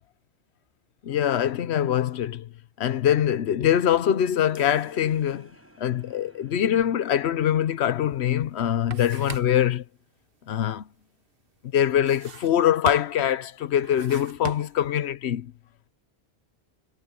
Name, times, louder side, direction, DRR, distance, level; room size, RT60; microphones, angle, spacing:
voice 1, 1.0-2.5 2.8-5.5 5.8-9.8 10.5-10.8 11.7-15.5, left 10 dB, 90° left, 1.0 m, -23 dB
sound 1, 4.5-9.4, equal, 15° right, 5.3 m, -56 dB
sound 2, 8.0-8.1 8.5-9.7 12.0-12.6 12.9-13.3 13.8-14.9, right 6 dB, 60° right, 1.2 m, -39 dB
omnidirectional pair, 1.1 m